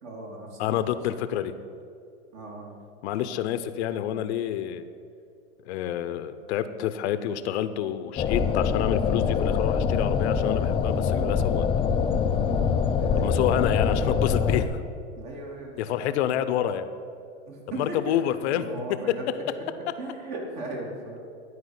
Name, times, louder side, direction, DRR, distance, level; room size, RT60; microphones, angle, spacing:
voice 1, 0.0-1.0 2.3-2.7 12.4-13.7 15.2-16.4 17.5-18.0 18.5-19.2 20.0-21.2, right 2 dB, 45° right, -1 dB, 3.0 m, -38 dB
voice 2, 0.6-1.5 3.0-4.8 5.7-11.7 13.2-14.8 15.8-16.9 17.7-18.7, left 10 dB, 65° left, 12 dB, 0.7 m, -28 dB
sound 1, 8.2-14.6, left 6 dB, 15° left, 0.4 m, -24 dB
12.0 x 4.8 x 8.1 m, 2.4 s
hypercardioid pair, 120°, 36 cm